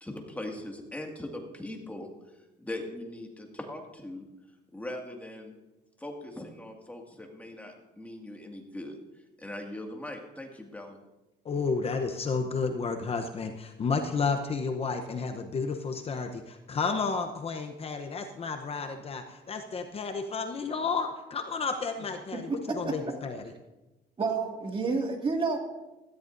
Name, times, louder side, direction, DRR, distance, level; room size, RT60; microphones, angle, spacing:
voice 1, 0.0-2.1 2.6-4.3 4.7-5.5 6.0-9.0 9.4-11.0, left 1 dB, 10° left, 1 dB, 2.1 m, -40 dB
voice 2, 11.4-23.5, left 4 dB, 35° left, 6 dB, 0.8 m, -32 dB
voice 3, 22.3-23.0 24.2-25.6, right 4 dB, 30° right, 2 dB, 2.2 m, -30 dB
17.0 x 13.5 x 2.6 m, 1.0 s
cardioid pair, 110°, 17 cm